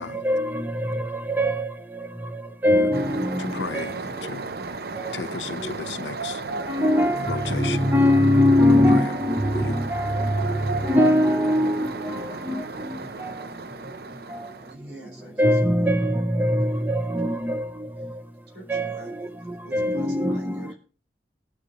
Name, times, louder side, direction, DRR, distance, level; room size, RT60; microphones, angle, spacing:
voice 1, 0.0-4.0 5.0-5.1 5.6-5.7 6.5-13.4 14.3-14.5 15.4-18.1 18.7-20.7, left 1 dB, 10° right, 0.7 m, -23 dB
voice 2, 2.0-2.9 3.4-4.6 5.1-6.4 7.3-7.9 8.9-9.1 9.5-9.7, left 5 dB, 85° left, 0.7 m, -35 dB
sound 1, 2.9-14.7, right 3 dB, 60° right, 0.7 m, -34 dB
voice 3, 14.7-15.9 16.4-17.6 18.5-20.8, right 2 dB, 75° right, 6.0 m, -46 dB
19.0 x 10.0 x 2.9 m
head